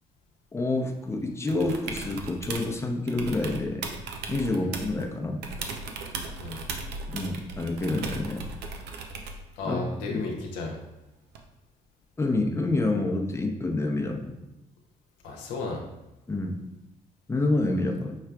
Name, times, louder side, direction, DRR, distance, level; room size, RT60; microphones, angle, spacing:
voice 1, 0.5-3.9 4.3-5.4 7.1-8.5 9.6-10.2 12.2-14.4 16.3-16.6 17.3-18.2, left 2 dB, 15° left, 3 dB, 0.7 m, -28 dB
sound 1, 1.5-2.7 3.1-5.1 5.4-9.5 11.3-11.4, right 3 dB, 75° right, 0.6 m, -37 dB
voice 2, 9.5-10.8 15.2-15.8, left 3 dB, 85° left, 0 dB, 0.7 m, -34 dB
5.8 x 3.2 x 2.3 m, 0.97 s
hypercardioid pair, 55°, 17 cm